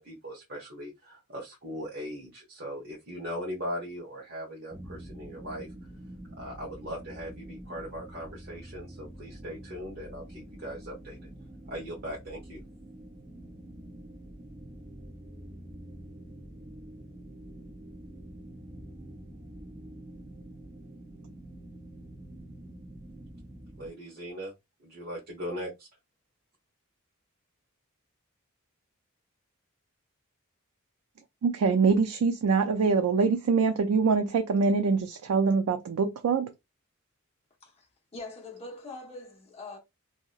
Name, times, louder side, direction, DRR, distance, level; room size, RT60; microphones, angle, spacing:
voice 1, 0.0-5.7 6.4-11.2 11.7-12.6 23.8-24.5 24.8-25.9, equal, 50° right, 1.1 m, -39 dB
sound 1, 4.7-23.9, right 1 dB, 15° right, 0.5 m, -46 dB
voice 2, 31.4-36.5, right 5 dB, 90° right, 0.4 m, -24 dB
voice 3, 38.1-39.8, left 2 dB, 30° left, 0.9 m, -43 dB
2.8 x 2.8 x 2.3 m
head